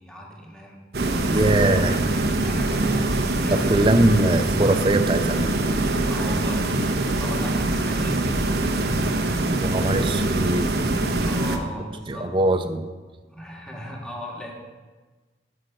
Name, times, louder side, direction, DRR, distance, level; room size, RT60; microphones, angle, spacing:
voice 1, 0.0-1.1 2.4-3.7 6.1-8.8 9.2-10.2 11.2-12.4 13.3-14.5, equal, 5° left, -2 dB, 1.7 m, -38 dB
sound 1, 0.9-11.6, right 2 dB, 60° right, 0.9 m, -23 dB
voice 2, 1.3-2.0 3.5-5.6 9.6-11.0 12.1-12.9, right 2 dB, 30° right, 8 dB, 0.6 m, -22 dB
11.5 x 5.7 x 6.6 m, 1.3 s
head